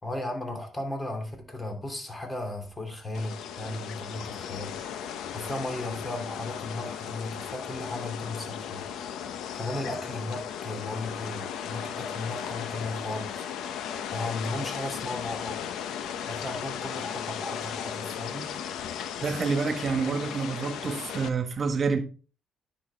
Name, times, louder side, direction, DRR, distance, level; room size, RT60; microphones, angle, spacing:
voice 1, 0.0-8.9 9.5-13.4 14.1-15.6 16.3-18.5, left 2 dB, 25° left, 2.7 m, -35 dB
sound 1, 3.1-21.3, left 8 dB, 85° left, 0.8 m, -36 dB
voice 2, 19.2-22.0, right 4 dB, 45° right, 1.7 m, -28 dB
10.5 x 6.2 x 3.5 m
cardioid pair, 90°, 0 cm